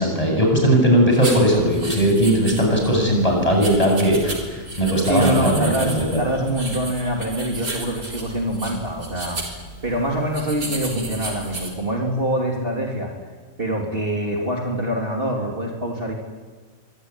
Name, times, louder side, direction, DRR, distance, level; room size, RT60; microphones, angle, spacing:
voice 1, 0.0-6.2, right 1 dB, 20° left, 1 dB, 8.0 m, -18 dB
sound 1, 1.1-11.7, right 2 dB, 70° right, 4.7 m, -34 dB
voice 2, 5.0-9.4 9.8-13.1 13.6-16.1, right 1 dB, 35° right, 0 dB, 3.6 m, -25 dB
25.0 x 24.0 x 10.0 m, 1.4 s
omnidirectional pair, 1.6 m